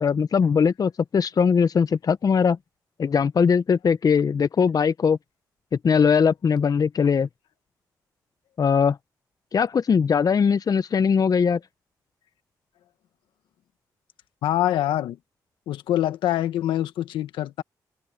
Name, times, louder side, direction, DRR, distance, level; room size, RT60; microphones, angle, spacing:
voice 1, 0.0-2.6 3.0-5.2 5.8-7.3 8.6-9.0 9.5-11.6, left 6 dB, 50° left, 0.7 m, -20 dB
voice 2, 14.4-15.2 15.7-17.6, left 13 dB, 85° left, 1.5 m, -25 dB
supercardioid pair, 55°, 8 cm